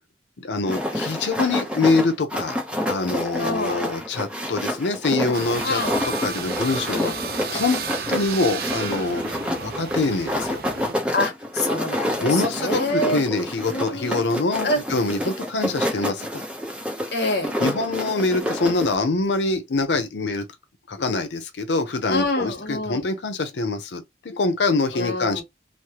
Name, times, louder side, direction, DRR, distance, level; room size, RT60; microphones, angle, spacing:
voice 1, 0.4-2.6 2.9-7.8 8.1-9.3 9.6-10.6 12.2-16.4 17.6-20.4 20.9-25.4, left 3 dB, 85° left, 0.6 m, -24 dB
sound 1, 0.7-18.9, left 1 dB, 5° right, 0.6 m, -28 dB
voice 2, 3.4-3.9 5.6-6.0 11.1-13.2 13.7-14.2 14.6-14.8 17.1-17.5 22.1-23.1 24.9-25.4, left 1 dB, 65° left, 1.1 m, -26 dB
sound 2, 5.3-10.9, right 5 dB, 55° right, 0.5 m, -32 dB
3.2 x 2.1 x 2.9 m
head